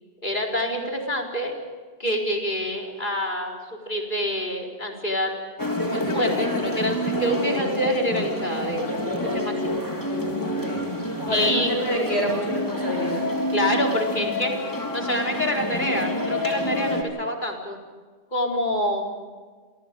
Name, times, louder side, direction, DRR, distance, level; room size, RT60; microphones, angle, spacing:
voice 1, 0.2-1.5 2.0-3.6 3.9-5.3 5.9-8.9 9.3-9.7 11.3-11.7 13.5-17.8 18.3-19.1, equal, 45° left, 0 dB, 4.6 m, -26 dB
sound 1, 5.6-17.0, left 1 dB, 15° left, 3.4 m, -27 dB
voice 2, 10.4-10.9 11.3-13.3, equal, 70° left, 1 dB, 7.9 m, -27 dB
29.0 x 25.0 x 5.4 m, 1.5 s
omnidirectional pair, 1.1 m